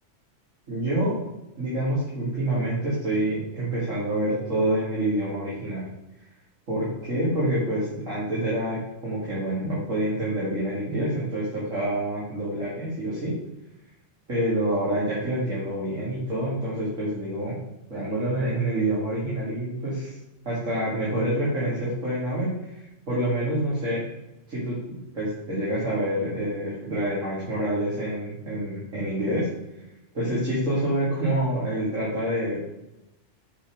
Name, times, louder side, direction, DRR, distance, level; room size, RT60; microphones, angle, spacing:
voice 1, 0.7-1.2 1.6-5.8 6.7-8.8 9.0-13.3 14.3-17.5 17.9-20.2 20.4-22.8 23.1-24.0 24.5-29.5 30.1-32.6, right 1 dB, 85° right, -9 dB, 2.9 m, -27 dB
7.3 x 5.2 x 4.9 m, 0.93 s
omnidirectional pair, 1.3 m